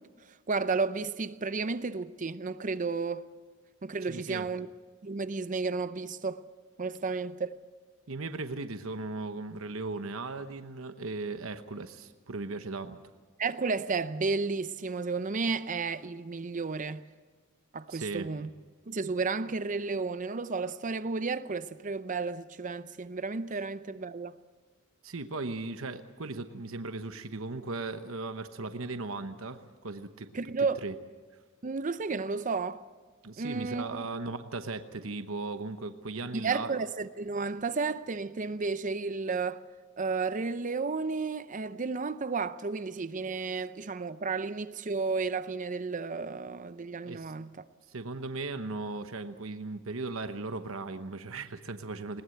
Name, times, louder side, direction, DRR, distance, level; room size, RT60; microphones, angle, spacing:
voice 1, 0.5-3.3 3.8-4.7 5.0-6.5 6.8-7.6 13.4-17.0 17.7-18.5 18.9-24.4 30.3-30.8 31.6-32.8 33.4-34.0 36.3-39.6 40.0-47.6, right 4 dB, 35° right, 0.6 m, -32 dB
voice 2, 4.0-4.5 8.1-13.0 17.9-18.3 23.5-23.6 25.0-30.3 30.8-30.9 33.2-36.7 47.1-47.3 47.9-52.2, right 3 dB, 70° right, 1.0 m, -37 dB
20.5 x 19.5 x 7.9 m
head